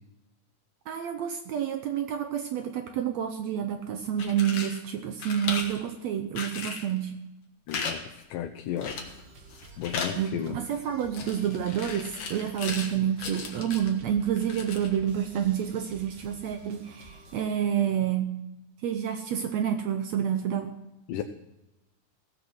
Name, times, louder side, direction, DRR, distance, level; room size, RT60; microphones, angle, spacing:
voice 1, 0.9-7.2 10.2-18.4 18.8-20.7, right 9 dB, 75° right, 7 dB, 1.7 m, -29 dB
sound 1, 4.0-4.8 5.2-5.8 6.4-6.9 7.7-8.0 8.2-8.3 8.8-9.2 9.5-10.2 11.1-12.9 13.2-13.9 14.4-14.9, left 5 dB, 55° left, 2.2 m, -36 dB
voice 2, 7.7-8.0 8.3-9.2 9.8-10.6 21.1-21.2, left 10 dB, 85° left, 6 dB, 2.3 m, -34 dB
sound 2, 8.8-17.4, right 3 dB, 45° right, 1.6 m, -50 dB
16.5 x 7.8 x 6.1 m, 0.98 s
omnidirectional pair, 3.7 m